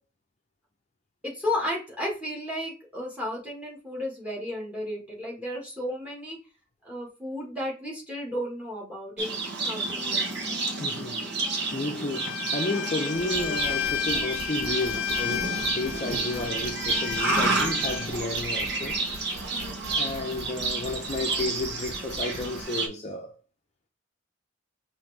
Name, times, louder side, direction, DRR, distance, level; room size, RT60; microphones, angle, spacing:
voice 1, 1.2-6.4 6.8-9.4 9.6-10.3 20.5-20.8, left 1 dB, 5° right, 1.5 m, -33 dB
Livestock farm animals working animals, 9.2-22.9, right 3 dB, 55° right, 1.0 m, -30 dB
voice 2, 10.8-11.2 11.5-19.0 19.9-23.3, left 2 dB, 35° left, 0.6 m, -32 dB
Bowed string instrument, 12.1-18.1, left 10 dB, 75° left, 0.3 m, -33 dB
sound 1, 13.1-22.6, equal, 90° right, 1.0 m, -43 dB
5.5 x 2.6 x 3.3 m
head